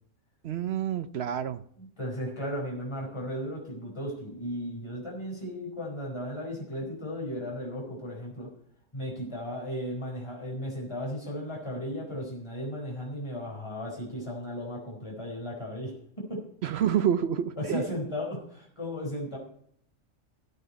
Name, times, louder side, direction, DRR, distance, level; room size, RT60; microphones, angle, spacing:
voice 1, 0.4-1.6 16.6-17.8, right 9 dB, 65° right, 13 dB, 0.9 m, -28 dB
voice 2, 1.8-8.5 8.9-16.4 17.6-19.4, equal, 25° left, -1 dB, 4.3 m, -35 dB
15.0 x 9.6 x 4.2 m, 0.65 s
omnidirectional pair, 1.2 m